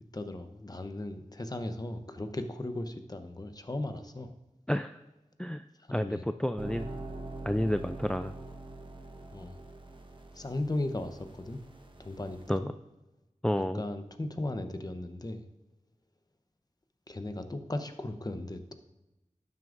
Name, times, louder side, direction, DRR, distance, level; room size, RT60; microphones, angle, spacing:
voice 1, 0.1-4.3 5.8-6.2 7.6-7.7 9.3-9.6 10.3-11.6 12.0-12.7 13.7-15.4 17.1-18.7, left 1 dB, 30° left, 8 dB, 0.8 m, -37 dB
voice 2, 4.7-5.0 5.4-6.9 7.4-8.3 12.5-12.7 13.4-13.8, left 1 dB, 5° left, 10 dB, 0.3 m, -30 dB
sound 1, 6.6-12.6, right 2 dB, 40° right, 1.1 m, -44 dB
12.0 x 9.5 x 2.6 m, 1.0 s
wide cardioid pair, 70°, 13 cm